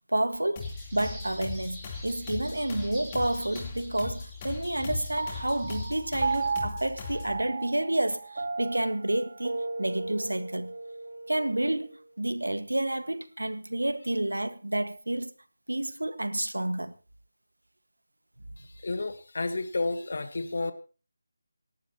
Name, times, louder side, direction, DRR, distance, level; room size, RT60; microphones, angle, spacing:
voice 1, 0.1-10.7 11.3-15.3 15.7-16.9, right 1 dB, 85° right, 1.5 m, -30 dB
sound 1, 0.6-7.4, left 4 dB, 25° left, 3.4 m, -39 dB
sound 2, 0.6-6.5, equal, ahead, 6.3 m, -46 dB
Piano, 5.2-11.9, right 3 dB, 60° right, 1.1 m, -35 dB
voice 2, 18.6-20.7, left 3 dB, 60° left, 1.4 m, -31 dB
27.5 x 11.5 x 3.0 m
figure-of-eight pair, 160°, 0 cm